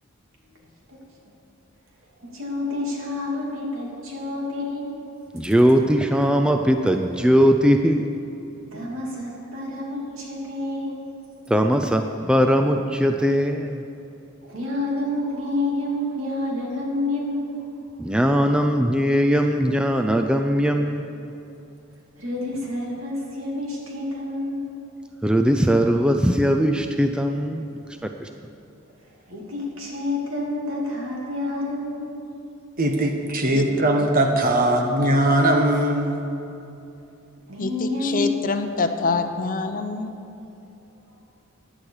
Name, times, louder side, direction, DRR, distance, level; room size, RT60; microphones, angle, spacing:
voice 1, 2.2-4.9 8.7-11.0 14.4-17.5 22.2-24.7 29.0-32.1 37.5-38.3, left 2 dB, 75° right, -3 dB, 2.9 m, -29 dB
voice 2, 5.3-8.2 11.5-13.8 18.0-21.3 25.2-28.3, equal, 5° right, 4 dB, 0.4 m, -20 dB
voice 3, 32.8-36.2, right 1 dB, 45° right, 3 dB, 1.4 m, -20 dB
voice 4, 37.6-40.2, left 3 dB, 40° left, 7 dB, 0.7 m, -26 dB
15.5 x 10.5 x 4.9 m, 2.8 s
head